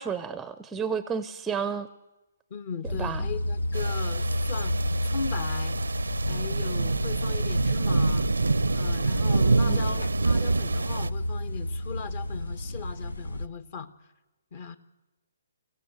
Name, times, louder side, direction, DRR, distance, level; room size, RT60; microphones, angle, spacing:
voice 1, 0.0-1.9 3.0-3.2 9.7-9.8, right 6 dB, 10° right, 14 dB, 0.6 m, -31 dB
voice 2, 2.5-4.7 5.0-5.8 6.3-8.3 8.7-13.9 14.5-14.8, left 6 dB, 40° left, 13 dB, 1.3 m, -38 dB
sound 1, 2.8-13.5, left 1 dB, 80° left, 0.9 m, -31 dB
sound 2, 3.7-11.1, right 3 dB, 75° right, 0.6 m, -27 dB
24.0 x 15.5 x 7.9 m, 1.1 s
figure-of-eight pair, 135°, 0 cm